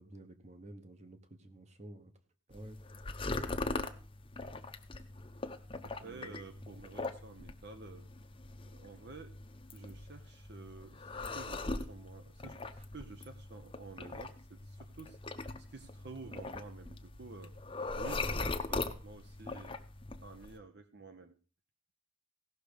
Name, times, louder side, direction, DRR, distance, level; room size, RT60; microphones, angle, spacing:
voice 1, 0.0-2.1 2.5-2.8 6.0-6.6 12.8-12.9, right 1 dB, 35° right, 9 dB, 1.1 m, -51 dB
sound 1, 2.5-20.6, left 3 dB, 25° left, 0.8 m, -41 dB
voice 2, 5.8-8.1 8.7-9.4 9.7-17.5 18.0-19.8 20.2-21.4, right 3 dB, 55° right, 8 dB, 0.8 m, -51 dB
16.5 x 6.3 x 5.1 m, 0.37 s
head